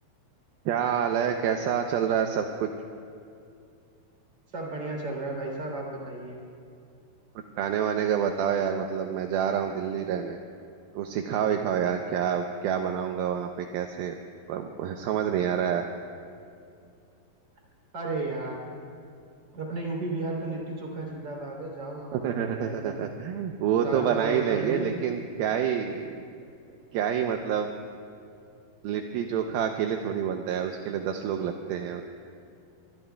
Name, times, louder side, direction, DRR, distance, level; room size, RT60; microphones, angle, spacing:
voice 1, 0.7-2.7 7.6-10.4 10.9-14.1 14.5-15.9 22.1-26.2 26.9-27.7 28.8-32.0, right 8 dB, 80° right, 4 dB, 2.4 m, -28 dB
voice 2, 4.5-6.4 17.9-18.7 19.5-23.0 23.7-24.9, right 2 dB, 30° right, -1 dB, 3.5 m, -34 dB
24.5 x 24.0 x 2.3 m, 2.5 s
omnidirectional pair, 4.6 m